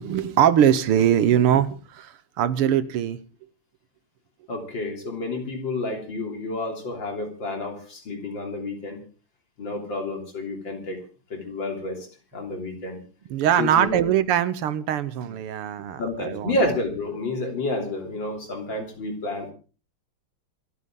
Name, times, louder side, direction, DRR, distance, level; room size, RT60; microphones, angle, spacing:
voice 1, 0.0-3.2 13.3-16.5, right 10 dB, 85° right, 2.0 m, -22 dB
voice 2, 4.5-9.0 9.6-11.0 11.3-12.1 12.3-13.0 13.6-14.0 16.0-19.5, left 2 dB, 55° left, 3.9 m, -30 dB
27.0 x 9.5 x 3.8 m
omnidirectional pair, 2.4 m